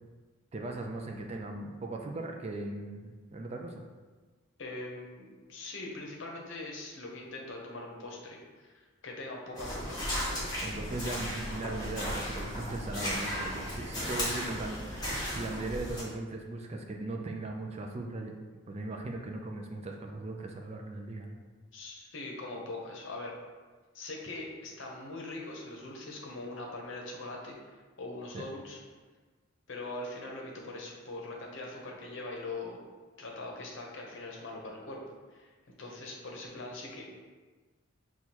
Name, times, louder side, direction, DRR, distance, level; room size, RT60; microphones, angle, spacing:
voice 1, 0.5-3.8 10.6-18.3 18.7-21.4 28.3-28.5, right 2 dB, 30° right, 2 dB, 0.3 m, -38 dB
voice 2, 4.6-10.1 10.8-10.9 21.7-23.3 23.9-28.8 29.7-32.8 33.2-35.0 35.3-35.5 35.8-37.0, left 2 dB, 65° left, -1 dB, 0.7 m, -42 dB
sound 1, 9.5-16.0, equal, 20° left, 1.1 m, -35 dB
6.1 x 2.3 x 2.8 m, 1.4 s
head